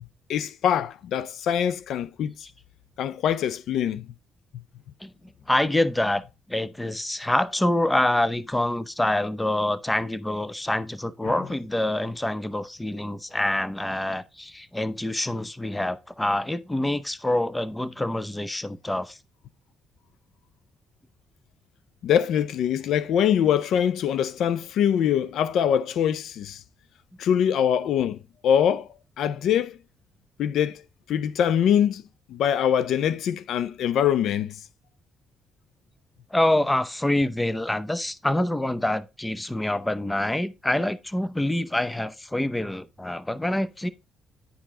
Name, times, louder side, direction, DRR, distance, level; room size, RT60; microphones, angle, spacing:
voice 1, 0.3-2.3 3.0-4.1 11.2-11.4 22.0-26.6 27.2-28.2 28.4-28.9 29.2-29.8 30.4-30.8 31.1-32.0 32.3-34.6, left 9 dB, 75° left, 0.5 m, -23 dB
voice 2, 5.5-6.2 6.5-19.2 36.3-43.9, left 1 dB, 10° left, 0.7 m, -26 dB
10.0 x 4.7 x 3.7 m
cardioid pair, 90°, 0 cm